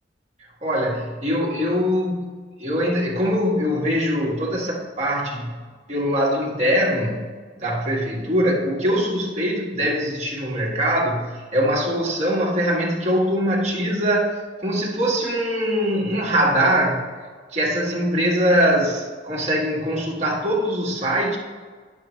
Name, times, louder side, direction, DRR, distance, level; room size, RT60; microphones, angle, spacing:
voice 1, 0.6-2.3 2.6-5.5 5.9-7.2 7.6-14.3 14.6-17.0 17.5-21.4, equal, 40° right, -3 dB, 1.6 m, -22 dB
8.8 x 6.7 x 3.2 m, 1.5 s
head